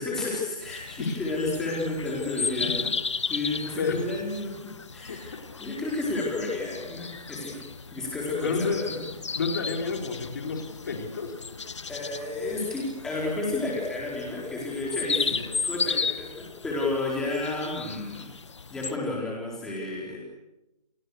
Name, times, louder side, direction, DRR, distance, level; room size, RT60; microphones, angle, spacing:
voice 1, 0.0-2.9 3.3-7.6 7.9-9.0 11.9-18.3 18.7-20.2, left 2 dB, 5° left, -3 dB, 4.3 m, -31 dB
sound 1, 0.6-19.0, left 5 dB, 50° left, 1.2 m, -35 dB
voice 2, 8.4-8.8 9.3-11.3 15.3-15.4, left 4 dB, 30° left, 3 dB, 4.5 m, -30 dB
30.0 x 25.0 x 6.6 m, 0.97 s
hypercardioid pair, 175°, 20 cm